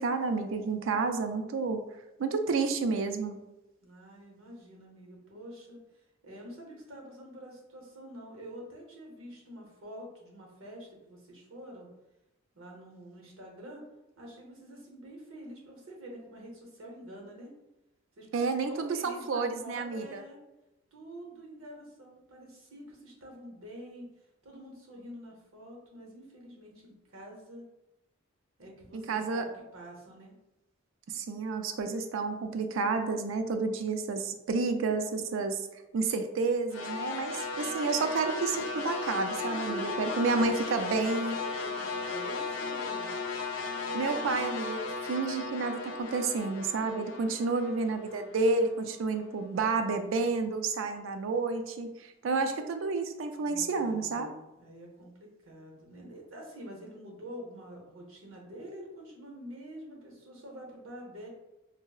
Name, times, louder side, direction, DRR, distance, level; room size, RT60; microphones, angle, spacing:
voice 1, 0.0-1.8 2.2-3.4 18.3-20.2 28.9-29.4 31.1-35.6 35.9-41.3 43.9-54.3, right 4 dB, 70° right, 7 dB, 0.3 m, -30 dB
voice 2, 3.8-11.9 12.5-13.8 14.2-17.5 18.2-20.4 20.9-24.0 24.4-27.6 28.6-29.5 29.7-30.3 39.4-43.1 44.0-44.3 46.5-46.8 53.4-61.3, right 1 dB, 90° right, -1 dB, 0.9 m, -47 dB
sound 1, 36.7-49.0, left 3 dB, 70° left, 0.4 m, -36 dB
4.4 x 2.0 x 2.3 m, 0.96 s
head